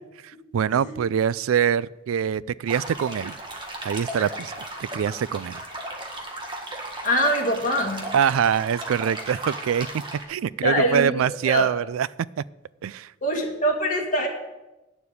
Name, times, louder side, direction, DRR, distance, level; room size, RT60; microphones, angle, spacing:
voice 1, 0.2-3.4 3.8-4.5 4.8-5.6 8.1-9.9 10.3-12.1 12.8-13.1, right 8 dB, 80° right, 21 dB, 0.3 m, -24 dB
sound 1, 2.7-10.2, right 1 dB, 25° right, 1.6 m, -35 dB
voice 2, 7.0-8.0 10.6-11.1 11.5-11.7 13.2-14.3, equal, 40° left, 0 dB, 2.2 m, -23 dB
9.4 x 7.0 x 8.3 m, 1.0 s
head